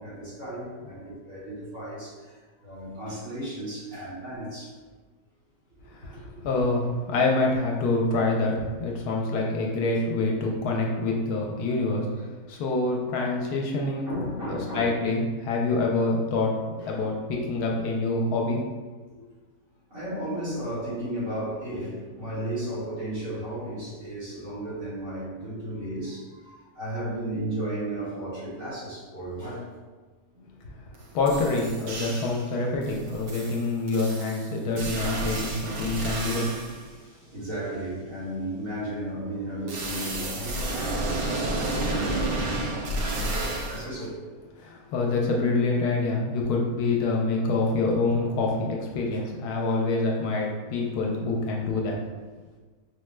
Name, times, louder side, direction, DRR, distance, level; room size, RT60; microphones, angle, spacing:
voice 1, 0.0-4.7 6.1-6.3 14.1-15.0 16.8-17.0 19.9-29.6 30.3-30.4 36.9-44.2 49.2-49.3, right 1 dB, 55° right, -10 dB, 1.8 m, -34 dB
voice 2, 5.9-14.1 14.5-18.6 31.1-36.5 44.6-52.0, left 3 dB, 80° left, -1 dB, 1.1 m, -26 dB
sound 1, 30.9-31.0 31.3-32.5 32.8-36.8 39.7-43.8, right 2 dB, 75° right, 0.5 m, -31 dB
4.7 x 2.1 x 3.1 m, 1.3 s
omnidirectional pair, 1.7 m